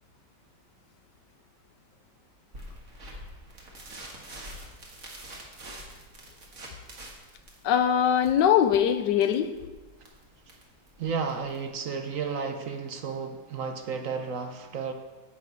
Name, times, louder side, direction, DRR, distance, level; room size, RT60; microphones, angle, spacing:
sound 1, 2.5-11.7, right 1 dB, 45° right, 2.0 m, -46 dB
voice 1, 7.6-9.7, left 9 dB, 85° left, 10 dB, 1.3 m, -22 dB
voice 2, 11.0-14.9, right 5 dB, 60° right, 6 dB, 0.9 m, -32 dB
10.5 x 8.3 x 4.5 m, 1.2 s
omnidirectional pair, 1.8 m